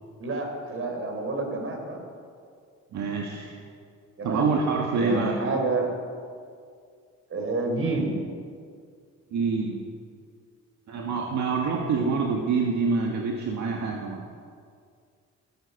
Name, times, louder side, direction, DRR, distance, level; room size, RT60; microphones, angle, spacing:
voice 1, 0.2-2.1 4.2-4.5 4.9-5.9 7.3-8.3, right 2 dB, 45° right, 3 dB, 3.8 m, -29 dB
voice 2, 2.9-3.6 4.2-5.3 9.3-9.8 10.9-14.2, right 4 dB, 70° right, 0 dB, 1.6 m, -26 dB
16.5 x 10.0 x 7.0 m, 2.2 s
cardioid pair, 90°, 30 cm